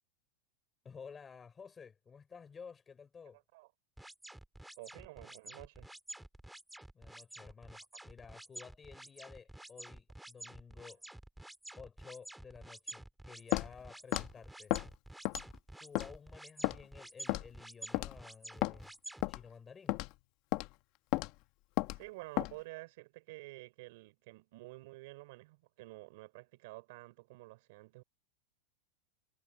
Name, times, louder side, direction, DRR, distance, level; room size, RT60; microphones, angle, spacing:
voice 1, 0.8-3.4 6.9-11.0 11.8-14.8 15.8-18.9 19.3-20.0, left 6 dB, 15° left, 3.8 m, -53 dB
sound 1, 4.0-19.3, right 1 dB, 5° right, 2.4 m, -50 dB
voice 2, 4.8-5.9 21.9-28.0, right 22 dB, 55° right, 3.9 m, -50 dB
Walk footsteps, 13.5-13.7 14.1-14.3 14.7-14.9 15.3-15.6 16.0-16.1 16.6-16.8 17.3-17.5 17.9-18.1 18.6-18.8 19.2-19.4 19.9-20.1 20.5-20.7 21.1-21.3 21.8-22.0 22.4-22.5, left 20 dB, 45° left, 1.0 m, -33 dB
supercardioid pair, 160°, 0 cm